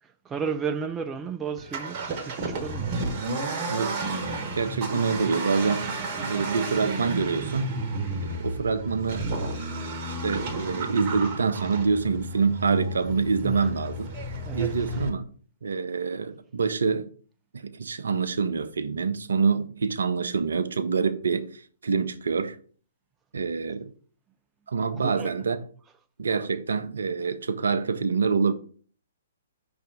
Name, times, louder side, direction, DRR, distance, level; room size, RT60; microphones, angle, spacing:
voice 1, 0.0-3.0 13.4-13.7 14.5-14.8 25.0-25.3, right 6 dB, 15° right, 0.3 m, -33 dB
Accelerating revving vroom, 1.6-15.1, right 2 dB, 35° right, 1.1 m, -32 dB
voice 2, 3.7-4.0 4.5-5.9 6.2-7.7 8.2-9.3 10.1-14.1 14.5-15.3 15.6-17.1 17.5-22.6 23.3-23.9 24.7-25.6 26.2-28.5, right 5 dB, 65° right, 0.6 m, -26 dB
5.6 x 3.5 x 4.9 m
figure-of-eight pair, 120°, 0 cm